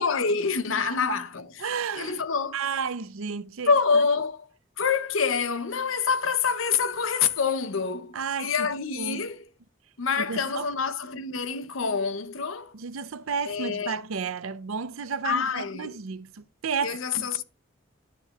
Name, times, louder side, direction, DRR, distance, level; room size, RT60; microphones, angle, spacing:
voice 1, 0.0-1.7 2.0-2.6 3.7-4.5 4.8-9.5 10.0-12.8 13.4-14.0 15.2-16.0 16.8-17.4, left 5 dB, 80° left, 0.7 m, -26 dB
voice 2, 0.8-1.2 1.6-2.2 2.5-3.7 8.1-8.7 9.0-9.3 10.3-10.7 12.7-17.3, right 5 dB, 90° right, 0.6 m, -32 dB
11.0 x 6.7 x 2.4 m
head